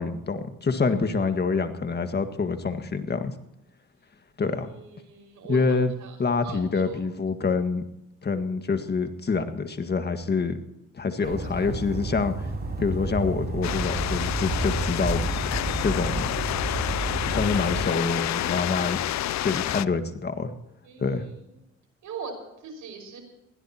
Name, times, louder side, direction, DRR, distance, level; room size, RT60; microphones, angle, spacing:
voice 1, 0.0-3.3 4.4-4.7 5.5-5.9 6.2-7.8 8.2-10.6 10.9-12.5 12.8-15.3 15.8-16.3 17.3-19.0 19.4-20.5 21.0-21.3, left 4 dB, 35° left, 8 dB, 1.8 m, -26 dB
voice 2, 4.4-6.2 6.4-7.0 11.2-11.7 20.8-21.4 22.0-22.3 22.6-23.2, right 5 dB, 75° right, 4 dB, 5.6 m, -41 dB
sound 1, 11.2-17.8, right 2 dB, 30° right, 5.0 m, -30 dB
sound 2, 13.6-19.9, left 13 dB, 65° left, 0.6 m, -29 dB
22.0 x 16.5 x 3.0 m, 0.90 s
cardioid pair, 90°, 30 cm